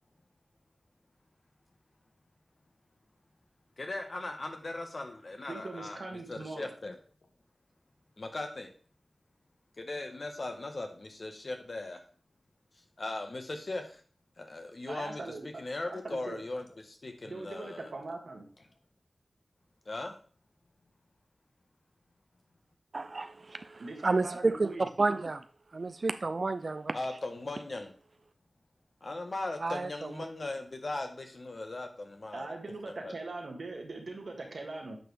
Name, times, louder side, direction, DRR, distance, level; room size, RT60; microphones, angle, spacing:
voice 1, 3.8-6.0 6.3-7.0 8.2-8.7 9.8-12.0 13.0-14.0 14.4-15.2 15.6-17.9 19.8-20.2 26.9-27.9 29.0-32.5 32.9-33.1, left 2 dB, 65° left, 1.3 m, -38 dB
voice 2, 5.5-6.7 14.9-15.5 15.8-16.4 17.2-18.4 23.8-24.9 32.3-35.0, right 3 dB, 80° right, 1.8 m, -41 dB
voice 3, 22.9-25.4 25.7-27.0 29.6-29.9, right 3 dB, 65° right, 0.4 m, -30 dB
8.7 x 5.3 x 3.4 m
cardioid pair, 45°, 0 cm